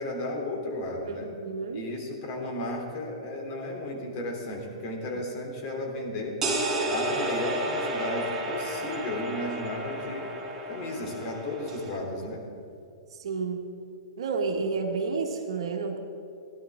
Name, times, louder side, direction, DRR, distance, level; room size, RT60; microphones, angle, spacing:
voice 1, 0.0-1.3 1.7-6.4 6.9-10.3 10.7-12.4, left 1 dB, 45° left, 0 dB, 3.2 m, -34 dB
voice 2, 1.1-1.9 12.3-12.4 13.1-13.7 14.2-16.0, right 4 dB, 70° right, 3 dB, 1.6 m, -31 dB
sound 1, 6.4-12.0, right 1 dB, 15° right, 2.7 m, -32 dB
16.5 x 12.0 x 3.7 m, 2.6 s
hypercardioid pair, 130°, 3 cm